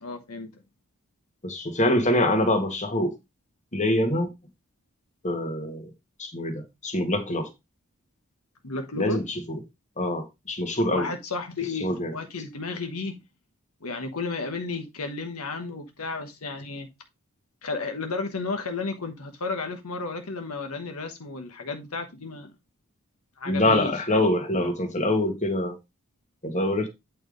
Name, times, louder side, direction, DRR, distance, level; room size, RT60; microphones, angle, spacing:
voice 1, 0.0-0.5 8.6-9.2 10.9-13.2 13.8-16.9 17.6-22.5 23.4-23.9, left 3 dB, 80° left, 1.2 m, -33 dB
voice 2, 1.4-3.1 3.7-4.3 5.2-5.9 6.2-7.5 8.9-9.6 10.0-11.1 11.8-12.1 23.5-25.8 26.4-26.9, left 1 dB, 35° left, 1.6 m, -25 dB
8.8 x 3.4 x 5.1 m
head